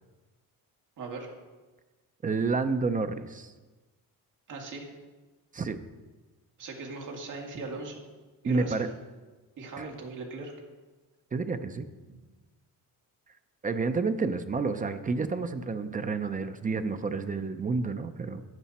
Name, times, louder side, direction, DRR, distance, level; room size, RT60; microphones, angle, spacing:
voice 1, 1.0-1.3 4.5-4.9 6.6-8.0 8.4-8.9 9.6-10.5 12.1-12.2, right 3 dB, 55° right, 0 dB, 2.3 m, -39 dB
voice 2, 2.2-3.5 5.5-5.8 8.5-8.9 9.8-9.9 11.3-11.8 13.6-18.4, right 4 dB, 20° right, 9 dB, 0.5 m, -29 dB
14.0 x 10.0 x 4.2 m, 1.3 s
cardioid pair, 175°, 38 cm